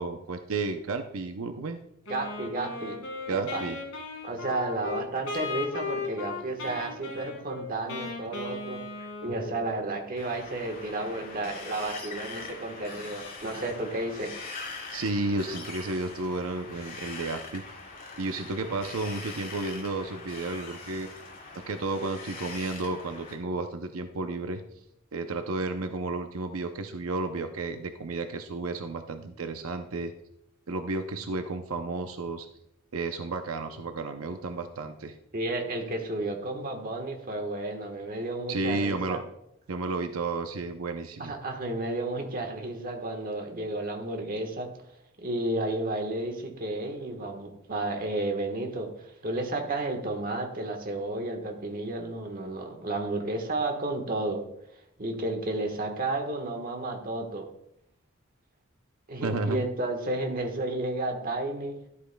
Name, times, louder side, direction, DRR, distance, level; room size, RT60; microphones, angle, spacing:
voice 1, 0.0-1.8 3.3-3.8 14.9-17.6 18.2-21.1 21.5-24.6 25.1-30.1 30.7-32.5 32.9-35.1 38.5-39.2 39.7-41.3 59.2-59.6, right 3 dB, 90° right, 7 dB, 0.6 m, -32 dB
Wind instrument woodwind instrument, 2.1-9.7, left 3 dB, 70° left, 2.7 m, -37 dB
voice 2, 2.1-3.0 3.3-3.6 4.2-8.8 9.2-14.3 35.3-39.2 41.2-44.7 45.2-48.9 49.2-54.4 55.0-57.4 59.1-61.7, right 2 dB, 45° right, 4 dB, 1.3 m, -32 dB
Wind, 10.2-23.3, left 3 dB, 45° left, 2.1 m, -42 dB
12.0 x 8.3 x 2.2 m, 0.79 s
head